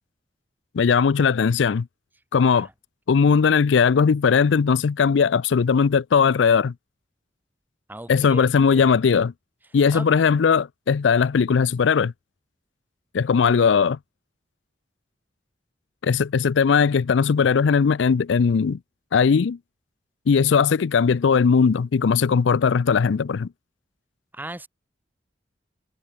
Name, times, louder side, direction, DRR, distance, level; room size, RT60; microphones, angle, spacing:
voice 1, 0.7-1.9 2.3-2.7 3.1-6.7 8.1-9.3 9.7-12.1 13.1-14.0 16.0-18.8 19.1-19.6 20.3-23.5, left 6 dB, 80° left, 0.4 m, -19 dB
voice 2, 7.9-8.8 9.9-10.1 24.3-24.7, right 1 dB, 10° right, 1.6 m, -37 dB
head